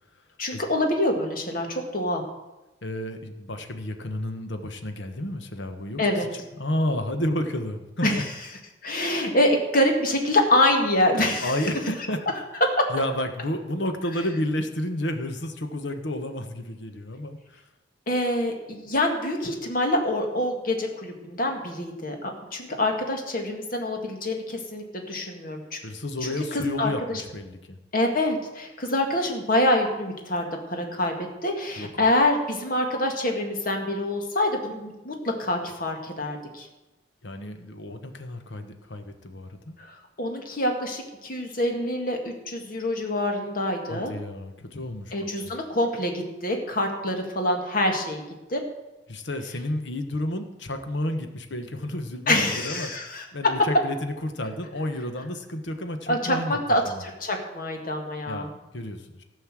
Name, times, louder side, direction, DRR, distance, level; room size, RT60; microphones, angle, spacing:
voice 1, 0.4-2.2 6.0-6.3 8.0-8.3 8.8-11.6 12.8-12.9 18.1-25.8 26.2-26.9 27.9-36.7 39.8-44.1 45.1-48.2 48.5-48.6 52.3-53.3 56.1-58.5, left 1 dB, 50° left, 3 dB, 1.9 m, -26 dB
voice 2, 2.8-8.2 8.9-9.0 11.4-12.2 12.9-17.6 25.8-27.8 31.8-32.1 37.2-39.8 43.9-45.1 45.4-45.5 49.1-56.6 56.8-57.0 58.3-59.2, left 1 dB, 70° left, 7 dB, 1.3 m, -31 dB
15.0 x 5.6 x 7.6 m, 1.0 s
head